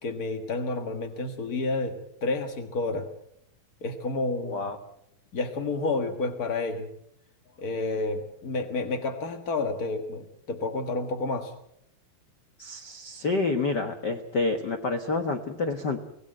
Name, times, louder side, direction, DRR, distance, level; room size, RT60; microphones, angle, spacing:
voice 1, 0.0-3.1 3.8-4.6 5.3-6.9 7.6-11.5, left 3 dB, 55° left, 6 dB, 1.0 m, -30 dB
voice 2, 4.4-4.8 12.6-16.0, left 3 dB, 90° left, 7 dB, 0.9 m, -28 dB
25.0 x 17.0 x 7.7 m, 0.76 s
omnidirectional pair, 4.1 m